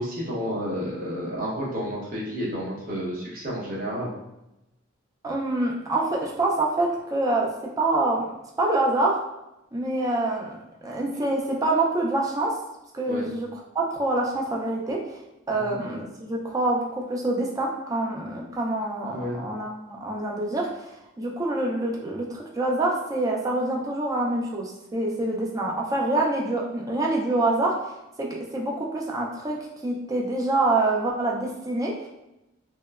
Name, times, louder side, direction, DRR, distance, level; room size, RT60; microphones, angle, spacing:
voice 1, 0.0-4.1 13.1-13.3 15.5-15.7 19.1-19.4, equal, 40° right, -5 dB, 0.7 m, -31 dB
voice 2, 5.2-7.5 7.8-8.3 8.6-9.2 9.7-10.5 10.8-12.5 12.9-15.2 15.5-27.9 28.2-29.6 29.8-32.1, right 2 dB, 15° right, -2 dB, 0.3 m, -26 dB
2.8 x 2.1 x 2.3 m, 0.92 s
head